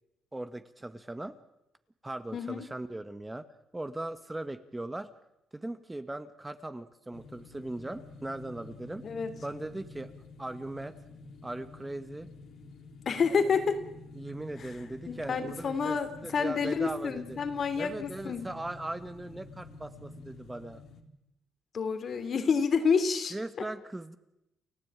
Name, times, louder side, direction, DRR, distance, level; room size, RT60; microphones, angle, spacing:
voice 1, 0.3-1.4 2.0-3.4 3.7-5.1 5.5-9.0 9.4-10.1 10.4-11.0 11.4-12.3 14.1-17.4 17.8-20.8 23.3-24.2, right 2 dB, 15° right, 10 dB, 1.5 m, -39 dB
voice 2, 2.3-2.6 9.0-9.4 13.0-13.8 14.6-14.7 15.1-18.5 21.7-23.6, left 5 dB, 50° left, 10 dB, 3.1 m, -29 dB
sound 1, 7.1-21.0, left 3 dB, 70° left, 3.1 m, -49 dB
29.5 x 15.0 x 9.0 m, 0.88 s
cardioid pair, 90°, 0 cm